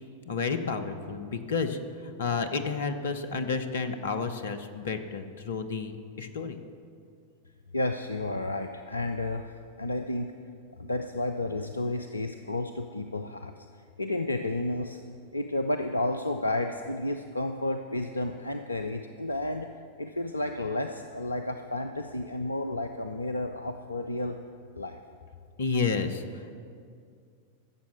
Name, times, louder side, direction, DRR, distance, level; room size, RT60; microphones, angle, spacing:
voice 1, 0.3-6.6 25.6-26.5, left 5 dB, 65° left, 9 dB, 0.9 m, -31 dB
voice 2, 7.7-10.3 10.8-13.7 14.0-15.0 15.3-19.7 20.0-24.4 24.7-25.0, left 2 dB, 80° left, 6 dB, 0.5 m, -31 dB
14.0 x 7.2 x 7.4 m, 2.3 s
figure-of-eight pair, 90°, 0 cm